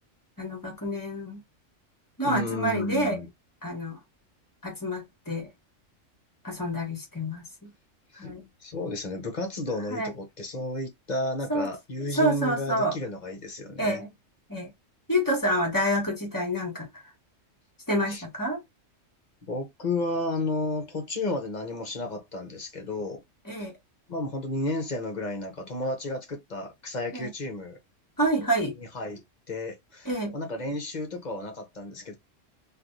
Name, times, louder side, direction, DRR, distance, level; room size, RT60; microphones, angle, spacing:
voice 1, 0.4-1.4 2.2-3.2 3.6-4.0 4.6-5.5 6.4-7.7 8.1-8.4 9.9-10.1 11.5-11.7 12.1-13.0 13.8-14.1 14.5-14.7 15.1-16.9 17.9-18.6 23.4-23.7 27.1-27.3 28.2-28.7 30.0-30.3, equal, 15° left, 1.3 m, -28 dB
voice 2, 2.2-3.3 8.1-14.0 18.1-18.2 19.4-23.2 24.1-27.8 28.8-29.2 29.5-32.2, left 2 dB, 40° left, 0.9 m, -32 dB
3.1 x 2.5 x 2.6 m
omnidirectional pair, 1.3 m